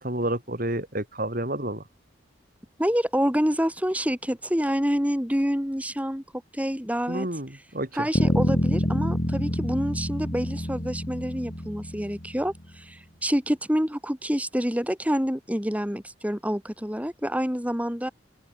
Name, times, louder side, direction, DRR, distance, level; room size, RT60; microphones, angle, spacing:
voice 1, 0.0-1.8 7.1-7.9, right 1 dB, 50° right, 4.9 m, -29 dB
voice 2, 2.8-6.2 6.5-7.3 7.9-18.1, equal, 10° right, 4.2 m, -27 dB
sound 1, 8.1-12.5, equal, 40° left, 3.6 m, -27 dB
head